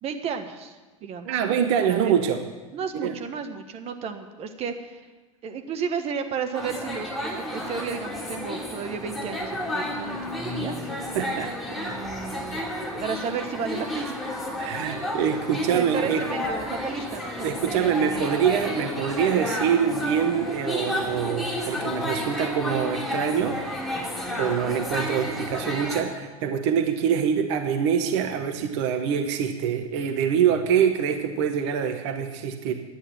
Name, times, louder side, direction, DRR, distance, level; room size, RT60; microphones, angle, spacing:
voice 1, 0.0-2.2 2.7-5.1 5.4-10.8 11.8-12.6 13.0-14.1 14.6-14.9 15.7-18.4, right 6 dB, 35° right, 7 dB, 1.2 m, -33 dB
voice 2, 1.2-2.4 2.9-3.1 11.1-11.5 14.6-16.2 17.4-23.6 24.4-32.7, right 8 dB, 55° right, 6 dB, 1.1 m, -25 dB
sound 1, 6.5-26.0, left 1 dB, ahead, 3.5 m, -31 dB
11.0 x 9.3 x 7.1 m, 1.3 s
figure-of-eight pair, 80°, 17 cm